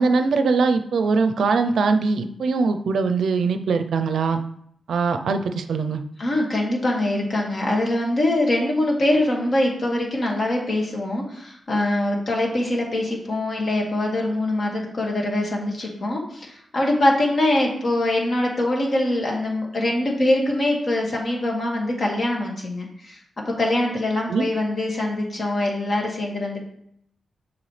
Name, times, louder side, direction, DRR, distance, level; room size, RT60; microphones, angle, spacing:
voice 1, 0.0-4.4 4.9-6.0 24.3-24.5, right 4 dB, 75° right, 8 dB, 0.6 m, -21 dB
voice 2, 6.2-23.2 23.5-26.6, left 1 dB, 50° left, -1 dB, 2.0 m, -23 dB
7.1 x 6.1 x 3.3 m, 0.70 s
cardioid pair, 65°, 0 cm